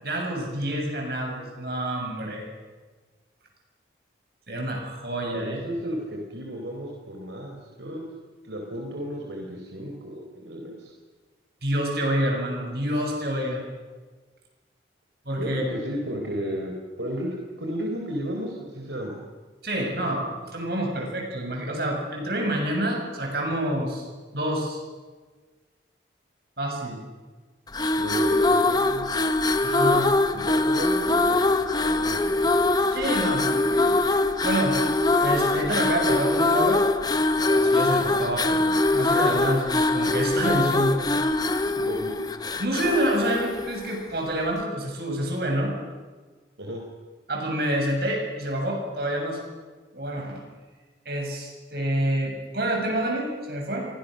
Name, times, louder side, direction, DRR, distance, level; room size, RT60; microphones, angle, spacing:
voice 1, 0.0-2.4 4.5-5.6 11.6-13.6 15.3-15.6 19.6-24.1 24.3-24.8 26.6-27.0 29.6-30.1 32.9-33.9 34.4-34.8 35.2-36.8 37.4-41.0 42.6-45.7 47.3-49.4 49.9-50.4 51.1-53.9, right 1 dB, 55° right, 1 dB, 7.6 m, -27 dB
voice 2, 5.3-8.0 8.4-10.9 15.4-19.2 28.0-29.1 30.3-31.5 31.8-32.7 41.7-42.1 46.6-46.8, equal, 80° right, 1 dB, 4.0 m, -33 dB
sound 1, 27.7-44.1, left 2 dB, 20° left, 1.2 m, -23 dB
29.0 x 24.0 x 6.6 m, 1.4 s
head